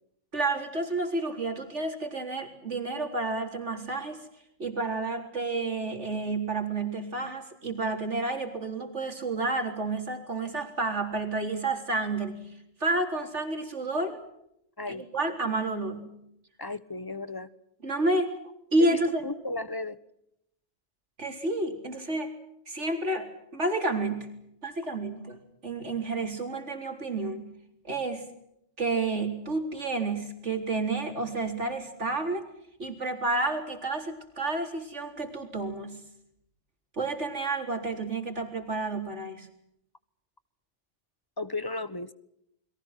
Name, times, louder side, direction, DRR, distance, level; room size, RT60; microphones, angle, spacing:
voice 1, 0.3-4.2 4.6-12.4 12.8-14.2 14.9-16.1 17.8-18.3 18.7-19.2 21.2-22.3 22.7-24.3 24.6-27.5 27.9-28.3 28.8-32.4 32.8-36.0 36.9-39.5, right 2 dB, 90° right, 5 dB, 4.2 m, -30 dB
voice 2, 16.6-17.5 18.8-20.0 41.4-42.1, left 2 dB, 20° left, 14 dB, 1.2 m, -35 dB
29.5 x 23.0 x 6.0 m, 0.78 s
omnidirectional pair, 1.2 m